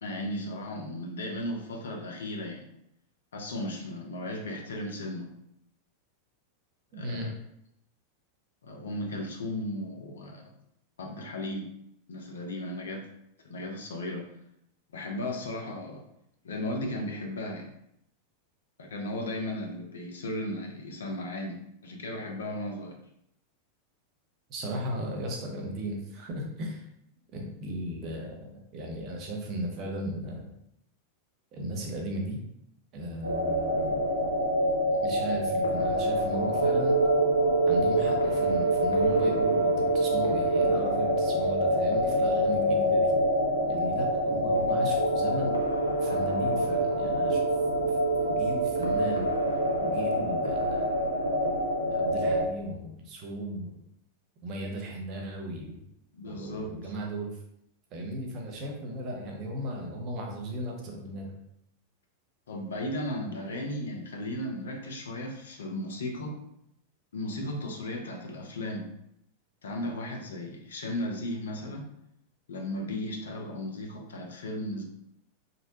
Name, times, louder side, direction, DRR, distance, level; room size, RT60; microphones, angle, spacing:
voice 1, 0.0-2.7 3.3-5.3 6.9-7.3 8.6-10.4 11.0-11.7 12.1-13.1 13.4-14.3 14.9-16.0 16.4-17.7 18.8-23.0 56.1-56.9 62.5-66.4 67.1-68.9 69.6-71.9 72.5-74.8, left 1 dB, 65° left, 2 dB, 0.4 m, -35 dB
voice 2, 6.9-7.3 24.5-26.8 27.3-30.4 31.5-32.4 32.9-34.0 35.0-37.0 37.7-43.1 43.7-45.6 46.0-47.4 47.7-47.9 48.3-49.3 49.8-51.3 51.9-53.8 54.4-55.8 56.3-57.3 57.9-61.3, right 1 dB, 35° right, 1 dB, 0.6 m, -36 dB
sound 1, 33.2-52.5, right 1 dB, 80° right, 0.3 m, -26 dB
2.6 x 2.1 x 2.7 m, 0.77 s
figure-of-eight pair, 90°, 0 cm